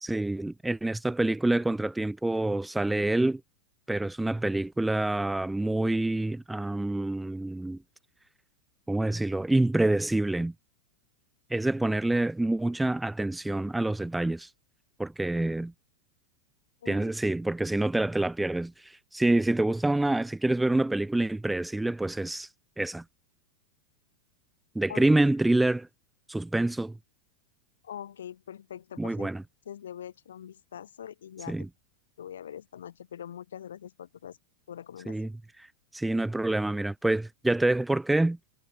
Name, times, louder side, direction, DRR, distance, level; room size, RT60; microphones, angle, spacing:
voice 1, 0.0-3.4 3.9-7.8 8.9-10.5 11.5-14.5 15.0-15.7 16.9-22.5 22.8-23.0 24.7-25.9 26.3-27.0 29.0-29.4 31.5-31.7 35.1-35.3 35.6-35.7 35.9-38.4, right 2 dB, 5° right, 1.3 m, -27 dB
voice 2, 27.8-29.3 29.7-31.7 32.2-34.4 34.7-35.2, left 9 dB, 65° left, 3.8 m, -43 dB
figure-of-eight pair, 90°, 0 cm